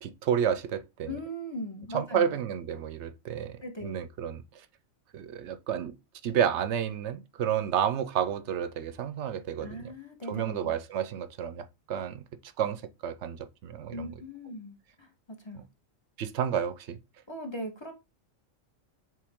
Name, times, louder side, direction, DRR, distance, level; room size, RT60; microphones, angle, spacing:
voice 1, 0.0-1.1 1.9-4.7 5.1-5.9 6.2-9.9 10.3-14.1 15.5-15.6 16.2-17.0, right 9 dB, 65° right, 0.9 m, -31 dB
voice 2, 1.1-2.3 3.6-4.0 9.6-10.7 13.9-15.6 17.3-17.9, equal, 20° left, 1.2 m, -39 dB
7.6 x 3.8 x 3.6 m
omnidirectional pair, 1.4 m